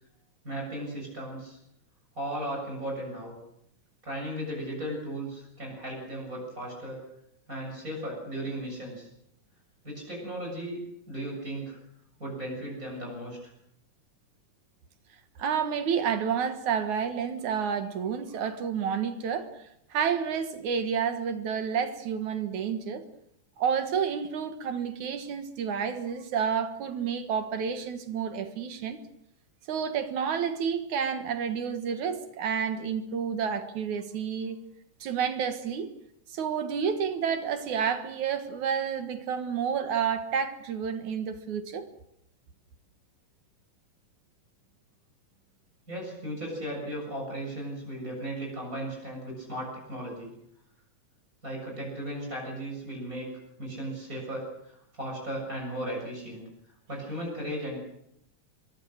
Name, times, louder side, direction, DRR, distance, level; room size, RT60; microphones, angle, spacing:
voice 1, 0.4-1.6 2.2-3.3 4.0-7.0 7.5-9.1 9.8-10.8 11.1-11.8 12.2-13.5 45.9-50.3 51.4-53.3 53.6-56.4 56.9-57.8, right 1 dB, 25° right, -1 dB, 7.6 m, -36 dB
voice 2, 15.4-19.5 19.9-23.0 23.6-29.0 29.7-34.6 35.0-35.9 36.3-41.9, right 7 dB, 65° right, 8 dB, 2.8 m, -30 dB
24.0 x 22.5 x 6.6 m, 0.77 s
omnidirectional pair, 3.8 m